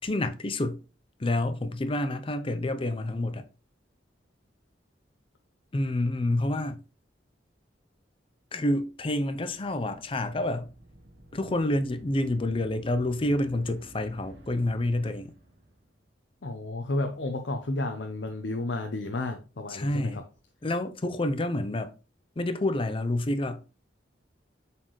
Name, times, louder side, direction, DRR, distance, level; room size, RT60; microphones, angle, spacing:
voice 1, 0.0-0.8 1.2-3.4 5.7-6.8 8.5-10.7 11.3-15.3 19.7-20.2 20.6-21.9 22.4-23.6, left 1 dB, 30° left, 0.6 m, -28 dB
sound 1, 9.0-16.0, equal, 80° right, 1.5 m, -52 dB
voice 2, 16.4-20.2, left 2 dB, 70° left, 0.7 m, -32 dB
7.5 x 4.3 x 3.1 m
head